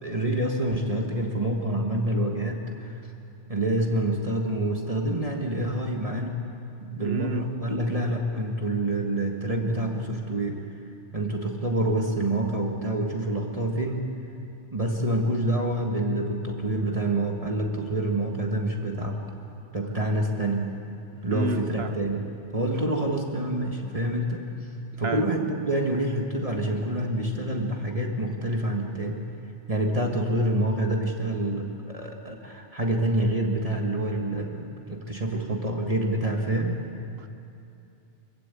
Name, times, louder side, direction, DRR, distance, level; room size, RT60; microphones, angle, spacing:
voice 1, 0.0-3.0 3.5-6.4 6.8-10.6 11.1-14.1 14.7-19.2 19.7-20.7 21.2-22.2 22.5-24.4 25.0-29.2 29.7-36.8, right 1 dB, 30° right, 1 dB, 1.6 m, -27 dB
voice 2, 7.0-7.4 21.3-21.9 25.0-25.2 37.2-37.3, right 2 dB, 60° right, 9 dB, 1.1 m, -30 dB
24.5 x 15.5 x 8.4 m, 2.8 s
omnidirectional pair, 1.2 m